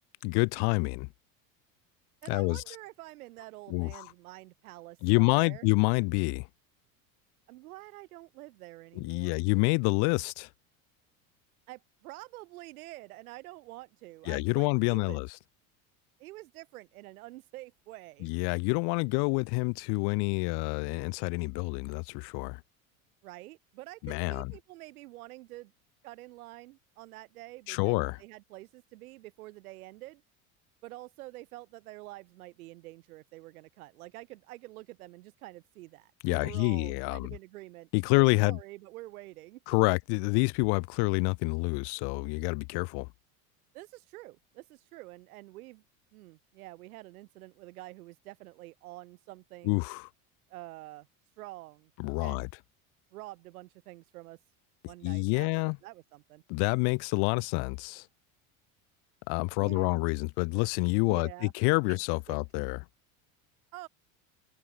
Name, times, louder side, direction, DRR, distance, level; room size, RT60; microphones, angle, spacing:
voice 1, 0.2-1.1 2.3-2.6 3.7-4.0 5.0-6.5 9.0-10.5 14.3-15.3 18.2-22.6 24.0-24.5 27.7-28.2 36.2-37.3 37.9-38.6 39.7-43.1 49.6-50.1 52.0-52.5 55.0-55.8 56.5-58.0 59.3-62.8, left 32 dB, 65° left, 1.8 m, -28 dB
voice 2, 2.2-5.7 7.5-9.5 11.7-15.3 16.2-18.3 23.2-25.7 26.0-30.2 30.8-39.6 43.7-45.8 46.1-49.8 50.5-51.1 51.4-51.9 52.2-52.5 53.1-54.4 54.9-56.4 59.6-60.0 61.1-61.5 61.9-62.0 62.3-62.4 63.7-63.9, right 19 dB, 85° right, 6.2 m, -47 dB
supercardioid pair, 100°, 42 cm